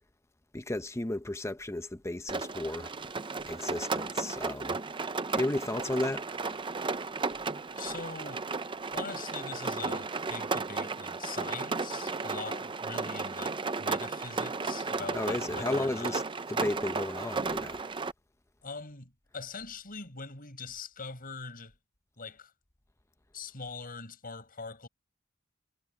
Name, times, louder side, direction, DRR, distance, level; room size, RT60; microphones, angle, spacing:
voice 1, 0.5-2.9 3.5-4.8 5.3-6.5 15.1-16.2 16.5-17.8, left 1 dB, 15° left, 0.7 m, -33 dB
Rain, 2.3-18.1, right 4 dB, 25° right, 0.6 m, -34 dB
voice 2, 7.8-8.4 8.9-16.2 18.6-21.7 22.2-22.5 23.3-24.9, left 4 dB, 45° left, 6.3 m, -42 dB
head